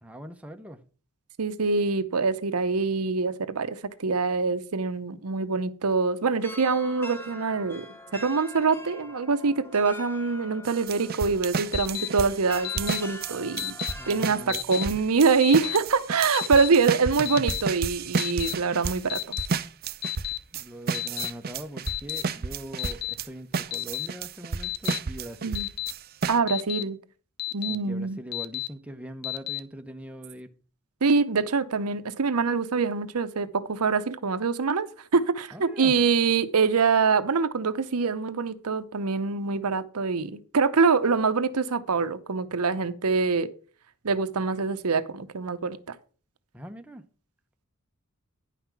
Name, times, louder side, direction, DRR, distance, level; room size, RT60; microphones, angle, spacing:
voice 1, 0.0-0.8 14.0-14.6 14.9-15.0 20.5-25.6 27.7-30.5 35.5-35.9 46.5-47.0, right 1 dB, 5° right, 0.7 m, -41 dB
voice 2, 1.4-7.9 8.1-13.7 14.1-19.4 25.4-25.7 26.3-27.0 27.5-28.2 31.0-34.9 35.1-43.5 44.0-46.0, right 4 dB, 80° right, 0.8 m, -25 dB
sound 1, 6.4-14.5, left 1 dB, 10° left, 1.0 m, -44 dB
sound 2, 10.6-23.3 23.5-26.4, right 5 dB, 45° right, 0.5 m, -32 dB
Alarm, 11.7-12.1 12.6-13.0 13.6-13.9 14.5-14.8 15.4-15.8 16.3-16.7 17.3-17.6 18.2-18.5 19.1-19.5 20.0-20.4 20.9-21.3 21.9-22.2 22.8-23.1 23.7-24.1 24.6-25.0 25.5-25.9 26.5-26.8 27.4-27.8 28.3-28.7 29.2-29.6, left 18 dB, 45° left, 0.7 m, -31 dB
10.0 x 5.7 x 5.9 m
head